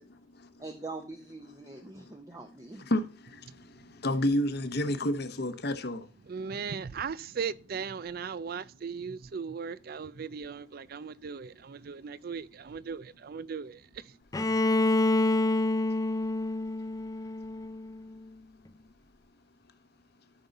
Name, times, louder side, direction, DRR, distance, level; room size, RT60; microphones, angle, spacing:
voice 1, 0.6-2.8, right 3 dB, 20° right, 0.8 m, -43 dB
voice 2, 4.0-6.1, left 1 dB, 60° left, 1.0 m, -28 dB
voice 3, 6.3-13.8, right 6 dB, 50° right, 0.4 m, -37 dB
Bowed string instrument, 14.3-18.2, left 2 dB, 20° left, 0.4 m, -27 dB
13.0 x 5.4 x 4.1 m
head